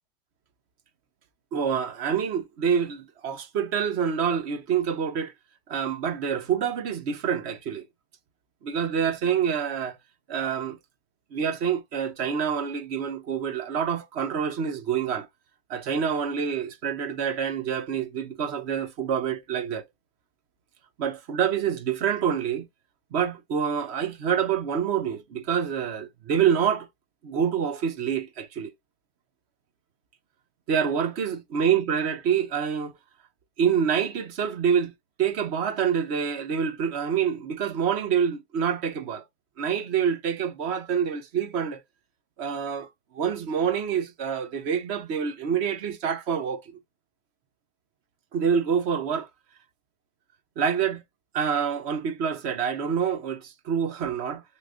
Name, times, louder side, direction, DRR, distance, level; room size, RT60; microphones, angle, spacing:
voice 1, 1.5-5.3 5.7-7.8 8.6-10.0 10.3-10.8 11.3-15.3 15.7-19.8 21.0-22.7 23.1-26.9 27.2-28.7 30.7-32.9 33.6-34.9 35.2-39.2 39.6-41.8 42.4-42.9 43.1-46.7 48.3-49.3 50.6-51.0 51.3-54.4, right 7 dB, 35° right, 0.7 m, -26 dB
3.1 x 2.6 x 2.5 m
hypercardioid pair, 120°, 41 cm